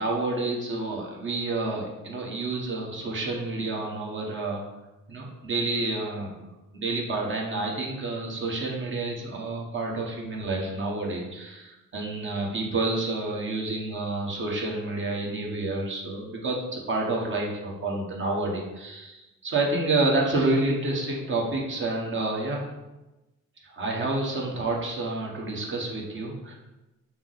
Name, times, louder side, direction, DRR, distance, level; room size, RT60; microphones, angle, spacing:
voice 1, 0.0-4.6 5.1-6.3 6.7-22.7 23.6-26.5, right 2 dB, 40° right, -2 dB, 1.1 m, -29 dB
5.7 x 2.0 x 3.9 m, 1.0 s
cardioid pair, 90°, 30 cm